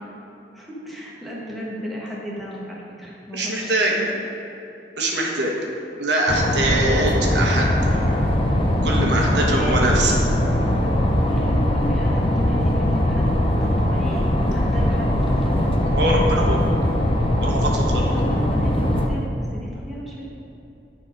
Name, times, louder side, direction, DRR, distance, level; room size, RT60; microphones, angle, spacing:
voice 1, 0.5-4.1 7.9-8.2 9.3-10.0 11.2-13.3 13.6-15.8 17.9-20.3, equal, ahead, -6 dB, 1.4 m, -34 dB
voice 2, 3.3-3.9 5.0-5.5 6.0-7.7 8.8-10.1 15.9-16.7 17.4-18.1, right 1 dB, 75° right, -1 dB, 1.2 m, -22 dB
sound 1, 6.3-19.1, left 1 dB, 30° left, 0.7 m, -20 dB
10.0 x 4.2 x 5.2 m, 2.9 s
head